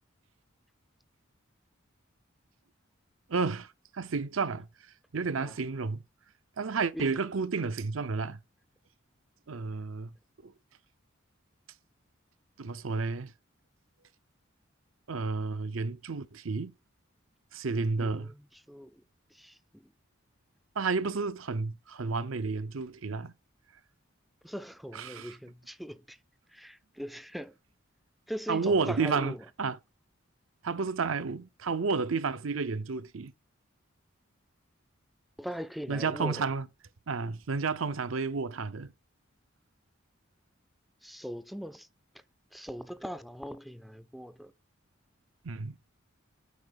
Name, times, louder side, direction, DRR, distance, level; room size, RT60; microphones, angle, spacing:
voice 1, 3.3-4.7 5.1-6.0 6.6-8.4 9.5-10.1 10.4-10.5 12.6-13.3 15.1-16.7 17.5-18.3 20.8-23.3 24.9-25.3 28.5-29.8 30.6-33.3 35.9-36.7 37.1-38.9 45.4-45.8, right 4 dB, 75° right, 0.7 m, -31 dB
voice 2, 18.0-19.0 19.3-19.9 24.4-26.2 26.5-27.6 28.3-29.4 35.4-36.5 41.0-41.9 42.5-44.5, equal, ahead, 0.4 m, -40 dB
8.4 x 4.6 x 4.0 m
head